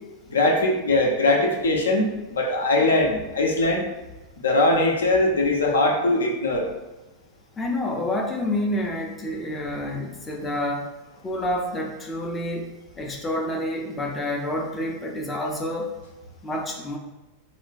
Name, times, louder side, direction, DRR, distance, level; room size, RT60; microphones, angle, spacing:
voice 1, 0.3-3.9 4.4-6.7, left 2 dB, 70° left, 0 dB, 0.6 m, -21 dB
voice 2, 7.6-10.9 11.2-16.0 16.4-17.0, left 1 dB, 15° left, 0 dB, 0.4 m, -28 dB
2.5 x 2.1 x 4.0 m, 1.1 s
figure-of-eight pair, 90°, 0 cm